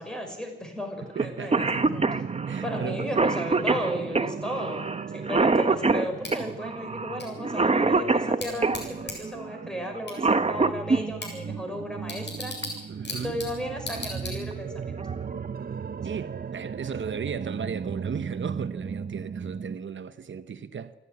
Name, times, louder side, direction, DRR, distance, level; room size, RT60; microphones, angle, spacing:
voice 1, 0.0-2.1 2.6-12.8 13.1-15.0 16.8-16.9, equal, 5° left, 5.7 m, -35 dB
Cough, 1.2-1.3 1.5-8.8 9.9-11.0 12.6-12.7 13.8-14.0 14.5-14.6 15.0-15.5, right 3 dB, 35° right, 0.9 m, -24 dB
voice 2, 1.2-1.6 2.4-3.1 12.9-13.4 16.0-20.9, right 6 dB, 85° right, 0.9 m, -35 dB
sound 1, 1.5-19.8, right 6 dB, 55° right, 0.6 m, -37 dB
Bicycle / Tick, 6.2-14.8, left 2 dB, 70° left, 8.0 m, -41 dB
28.5 x 11.0 x 9.8 m
wide cardioid pair, 100°, 19 cm